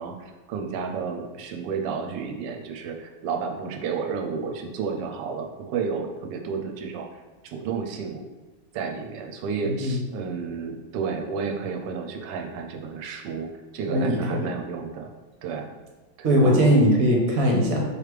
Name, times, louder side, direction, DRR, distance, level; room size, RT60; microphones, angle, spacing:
voice 1, 0.0-8.3 8.7-13.5 13.7-15.1 15.4-15.7 16.2-16.8, right 5 dB, 75° right, 3 dB, 1.2 m, -31 dB
voice 2, 9.6-10.0 13.9-14.5 16.2-17.8, equal, 60° right, 0 dB, 1.1 m, -20 dB
4.8 x 3.2 x 3.3 m, 1.2 s
omnidirectional pair, 2.0 m